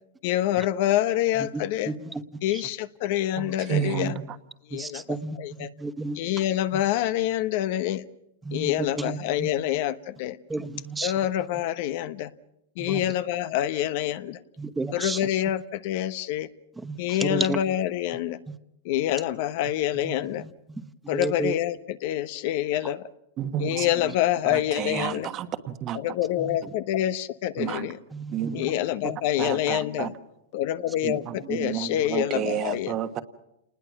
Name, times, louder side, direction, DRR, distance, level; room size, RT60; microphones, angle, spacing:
voice 1, 0.2-1.9 2.4-4.2 4.7-5.0 5.4-5.7 6.1-8.1 8.5-10.4 11.0-12.3 12.8-14.4 14.9-16.5 17.0-18.4 18.8-20.4 21.1-23.0 23.6-25.3 25.9-28.0 28.5-30.1 30.5-32.9, left 12 dB, 55° left, 13 dB, 1.0 m, -26 dB
voice 2, 1.5-2.2 2.5-2.6 4.7-6.2 8.5-9.5 10.5-11.1 12.8-13.0 14.6-15.2 16.8-17.6 18.5-18.6 20.0-20.1 21.1-21.5 23.7-23.8 26.4-26.5 28.1-28.7, right 3 dB, 10° right, 11 dB, 0.9 m, -32 dB
voice 3, 3.4-4.2 23.4-23.9 24.5-26.0 27.6-27.9 28.3-28.7 29.4-30.1 31.0-33.2, right 10 dB, 30° right, 9 dB, 1.4 m, -30 dB
29.0 x 20.0 x 6.0 m, 0.82 s
supercardioid pair, 145°, 0 cm